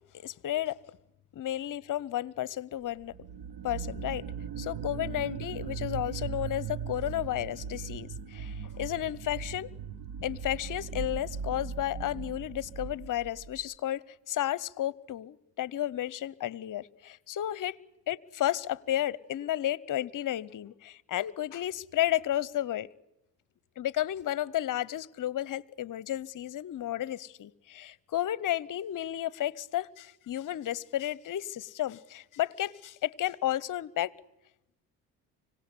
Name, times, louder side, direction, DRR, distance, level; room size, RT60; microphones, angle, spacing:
voice 1, 0.1-0.8 1.3-3.1 3.6-4.2 4.6-9.7 10.2-17.8 18.1-22.9 23.8-34.1, left 13 dB, 45° left, 0.9 m, -32 dB
sound 1, 3.0-13.7, right 7 dB, 55° right, 1.4 m, -39 dB
25.5 x 17.5 x 9.8 m
hypercardioid pair, 55°, 44 cm